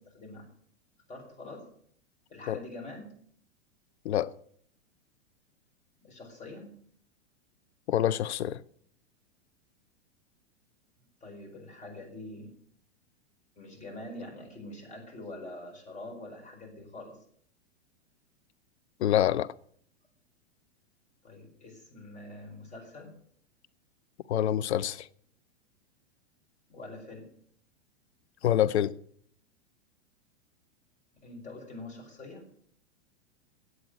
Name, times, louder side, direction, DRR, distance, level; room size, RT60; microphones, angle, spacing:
voice 1, 0.1-0.4 1.1-1.6 2.3-3.1 6.0-6.7 11.2-12.5 13.6-17.2 21.2-23.2 26.7-27.3 31.2-32.5, left 2 dB, 20° left, 4.8 m, -44 dB
voice 2, 7.9-8.6 19.0-19.5 24.3-25.1 28.4-28.9, left 11 dB, 75° left, 0.6 m, -26 dB
9.5 x 8.0 x 9.2 m
hypercardioid pair, 110°, 34 cm